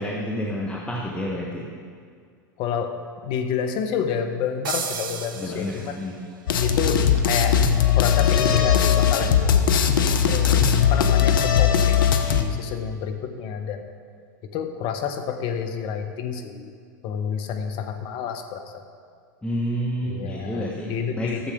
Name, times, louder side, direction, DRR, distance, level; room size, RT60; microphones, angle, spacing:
voice 1, 0.0-1.7 5.4-6.2 19.4-21.5, equal, 10° left, -3 dB, 1.2 m, -29 dB
voice 2, 2.6-6.0 6.6-7.6 7.9-9.5 10.3-12.0 12.2-13.9 14.4-16.7 17.0-18.8 20.0-21.5, left 7 dB, 50° left, 7 dB, 1.1 m, -29 dB
sound 1, 4.6-6.3, right 6 dB, 80° right, 1.0 m, -33 dB
sound 2, 6.5-12.4, left 8 dB, 75° left, 0.8 m, -19 dB
13.0 x 7.3 x 5.0 m, 2.2 s
hypercardioid pair, 95°, 11 cm